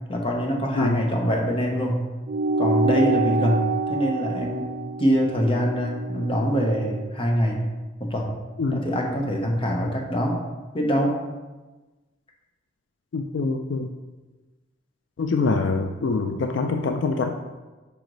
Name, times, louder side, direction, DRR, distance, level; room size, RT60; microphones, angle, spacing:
voice 1, 0.1-2.1 2.6-4.7 5.0-7.6 8.0-8.3 8.7-10.4 10.7-11.2, equal, 30° left, 0 dB, 0.9 m, -24 dB
sound 1, 2.3-7.1, right 3 dB, 55° right, 0.4 m, -27 dB
voice 2, 13.1-13.9 15.2-17.3, left 3 dB, 70° left, 4 dB, 0.4 m, -24 dB
5.0 x 4.8 x 3.9 m, 1.2 s
head